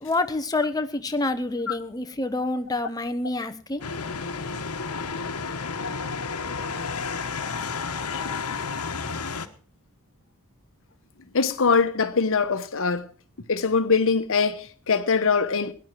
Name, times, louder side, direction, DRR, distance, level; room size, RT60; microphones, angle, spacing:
voice 1, 0.0-3.8, left 2 dB, 15° left, 0.9 m, -27 dB
sound 1, 3.8-9.5, left 5 dB, 90° left, 1.1 m, -31 dB
voice 2, 11.3-13.1 13.5-15.7, left 5 dB, 65° left, 1.1 m, -22 dB
17.5 x 10.5 x 4.6 m
head